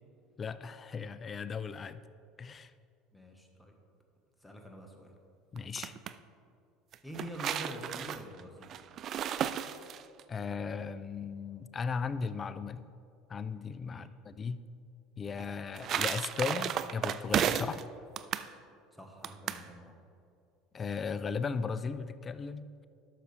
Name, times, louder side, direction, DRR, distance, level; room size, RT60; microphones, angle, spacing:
voice 1, 0.4-2.0 2.4-2.7 5.5-6.0 10.3-12.9 13.3-14.6 15.2-17.8 20.7-22.6, left 5 dB, 30° left, 15 dB, 0.4 m, -36 dB
voice 2, 3.1-3.7 4.4-5.1 7.0-8.7 13.9-14.0 18.9-20.0, equal, 5° left, 2 dB, 1.3 m, -46 dB
sound 1, 5.6-6.1 6.9-10.2 15.4-17.8 18.2-18.5 19.2-19.7, right 9 dB, 45° right, 0.3 m, -33 dB
12.0 x 6.6 x 3.3 m, 2.5 s
hypercardioid pair, 75°, 0 cm